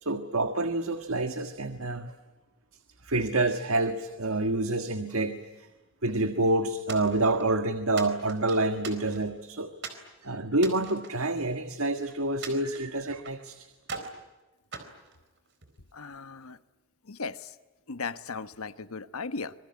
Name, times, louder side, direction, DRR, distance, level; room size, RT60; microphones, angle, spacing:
voice 1, 0.0-2.1 3.0-5.7 6.0-9.7 10.2-13.7, right 2 dB, 80° right, 8 dB, 1.6 m, -28 dB
sound 1, 6.9-7.5 8.0-9.4 9.8-10.1 10.5-11.9 12.4-13.4 13.8-14.2 14.7-15.8, right 5 dB, 55° right, 4.2 m, -42 dB
voice 2, 15.9-16.6 17.0-17.5 17.9-19.5, left 4 dB, 90° left, 12 dB, 1.2 m, -37 dB
26.0 x 23.0 x 9.6 m, 1.1 s
head